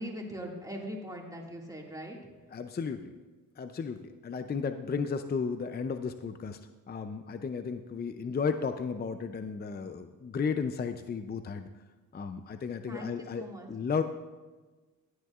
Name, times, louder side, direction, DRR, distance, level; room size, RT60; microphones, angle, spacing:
voice 1, 0.0-2.2 12.9-13.7, equal, 10° right, -1 dB, 2.1 m, -40 dB
voice 2, 2.5-3.1 3.6-6.6 6.9-11.7 12.1-14.0, left 5 dB, 30° left, 9 dB, 0.5 m, -34 dB
15.0 x 9.3 x 2.4 m, 1.3 s
cardioid pair, 75°, 35 cm